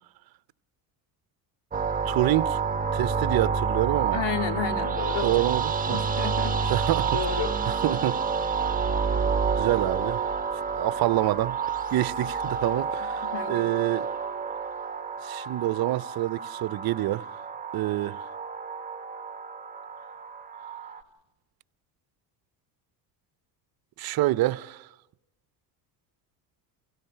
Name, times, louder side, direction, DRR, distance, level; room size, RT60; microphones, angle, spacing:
sound 1, 1.7-21.0, right 5 dB, 20° right, 1.4 m, -29 dB
voice 1, 2.1-2.6 2.9-4.2 5.2-6.0 6.7-7.2 7.7-8.2 9.6-10.2 10.5-11.6 11.9-14.1 15.2-17.3 17.7-18.3 24.0-24.9, right 16 dB, 50° right, 0.7 m, -27 dB
voice 2, 4.1-5.3 5.8-6.7 7.1-7.5 13.3-13.7, left 7 dB, 65° left, 2.2 m, -32 dB
28.5 x 16.5 x 5.7 m
supercardioid pair, 85°, 46 cm